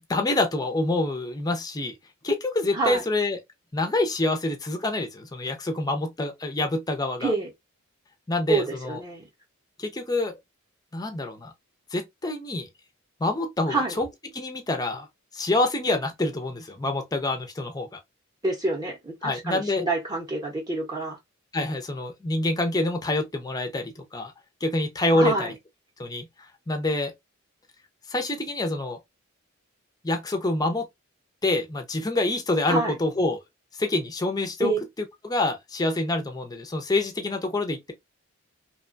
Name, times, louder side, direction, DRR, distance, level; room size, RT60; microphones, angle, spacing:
voice 1, 0.1-1.9 2.2-3.4 3.7-7.3 8.3-9.0 9.8-10.3 10.9-11.5 11.9-12.7 13.2-14.1 14.4-15.1 15.3-18.0 19.2-19.9 21.5-24.3 24.6-25.5 26.0-26.3 26.7-27.1 28.1-29.0 30.0-30.9 31.4-33.4 33.8-34.7 35.2-37.9, left 2 dB, 15° left, 0.5 m, -26 dB
voice 2, 2.7-3.0 7.2-7.5 8.5-9.3 13.7-14.0 18.4-21.2 25.1-25.5 32.7-33.0 34.6-34.8, right 3 dB, 20° right, 0.7 m, -27 dB
2.8 x 2.2 x 2.5 m
head